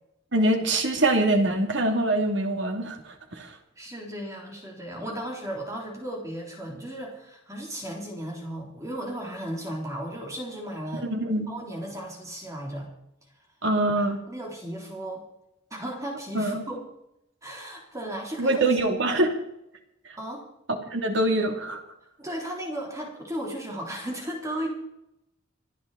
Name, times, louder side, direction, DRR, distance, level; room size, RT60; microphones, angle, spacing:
voice 1, 0.3-3.5 11.0-11.5 13.6-14.2 16.3-16.6 18.4-19.4 20.9-21.8, right 1 dB, 65° right, 4 dB, 2.8 m, -24 dB
voice 2, 3.8-11.1 11.5-12.9 14.0-15.2 15.7-16.8 17.4-18.6 20.2-20.4 22.2-24.7, right 1 dB, 15° right, -1 dB, 3.7 m, -35 dB
27.5 x 10.5 x 4.2 m, 0.81 s
head